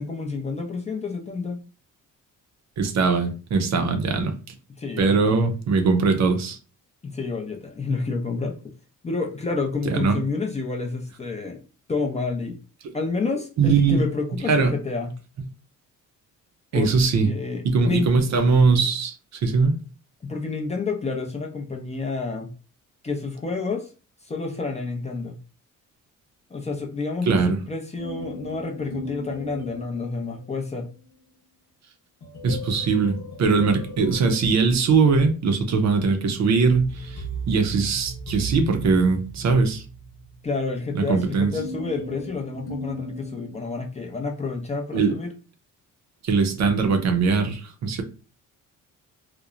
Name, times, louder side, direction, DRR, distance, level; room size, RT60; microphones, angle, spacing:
voice 1, 0.0-1.6 4.8-5.5 7.0-8.5 9.0-11.6 11.9-12.6 12.9-15.1 16.7-18.1 20.2-22.5 23.0-23.9 24.2-25.4 26.5-30.9 40.4-45.3, left 4 dB, 20° left, 0.4 m, -29 dB
voice 2, 2.8-4.5 5.0-6.6 9.9-10.2 13.6-14.0 14.5-14.7 16.7-17.3 17.6-19.1 19.4-19.8 27.3-27.6 32.4-39.8 40.9-41.5 44.9-45.1 46.2-48.0, right 4 dB, 55° right, 0.5 m, -21 dB
sound 1, 28.0-30.6 32.2-35.2 36.6-44.0, right 1 dB, 65° left, 0.9 m, -37 dB
2.9 x 2.0 x 2.4 m
cardioid pair, 115°, 33 cm